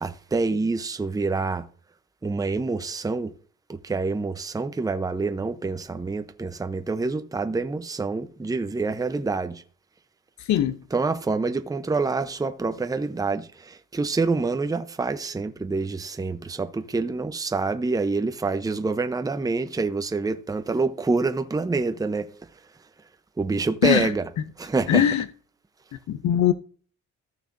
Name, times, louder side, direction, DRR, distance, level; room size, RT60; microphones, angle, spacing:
voice 1, 0.0-1.7 2.2-3.3 3.7-9.6 10.9-22.3 23.4-24.3 24.6-25.0, right 3 dB, 10° right, 0.7 m, -27 dB
voice 2, 24.9-25.2 26.1-26.5, left 10 dB, 70° left, 0.6 m, -20 dB
14.5 x 6.5 x 2.6 m
cardioid pair, 90°, 30 cm